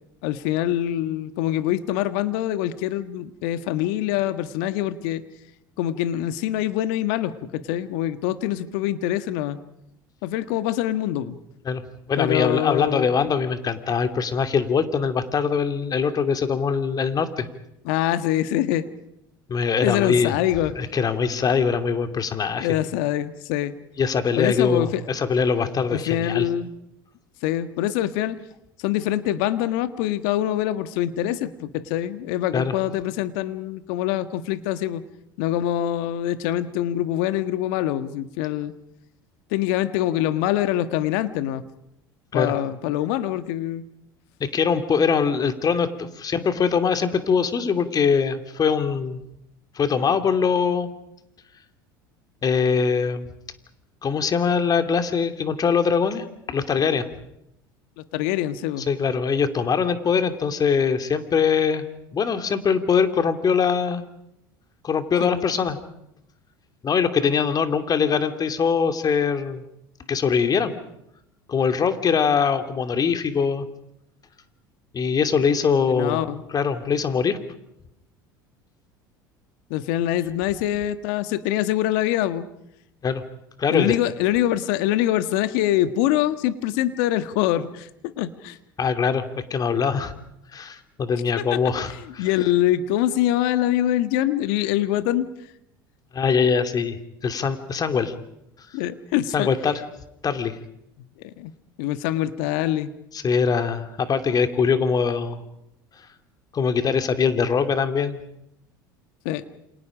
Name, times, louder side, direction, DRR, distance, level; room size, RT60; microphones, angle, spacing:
voice 1, 0.2-5.2 5.8-9.6 10.2-11.4 12.2-13.1 17.8-18.9 19.8-20.7 22.6-23.7 24.4-25.0 25.9-26.7 27.4-28.4 28.8-35.0 35.4-38.7 39.5-41.6 42.3-43.8 58.0-58.9 65.2-65.4 75.9-76.4 79.7-82.5 83.7-87.9 88.2-88.6 91.4-91.6 92.2-95.3 98.7-99.5 101.2-101.5 101.8-102.9 109.2-109.4, left 13 dB, 65° left, 11 dB, 1.5 m, -24 dB
voice 2, 12.1-17.5 19.5-20.3 20.7-22.8 24.0-26.5 32.5-32.7 42.3-42.5 44.4-49.2 49.8-50.9 52.4-53.3 54.0-57.1 58.9-61.8 62.1-64.0 64.8-65.8 66.8-69.6 70.1-70.7 71.5-73.6 74.9-77.4 83.0-83.2 83.6-83.9 88.8-90.1 90.5-92.3 96.1-98.1 99.3-99.7 100.2-100.6 103.1-105.4 106.5-108.2, left 6 dB, 35° left, 8 dB, 2.7 m, -22 dB
29.0 x 26.5 x 5.1 m, 0.81 s
hypercardioid pair, 75°, 12 cm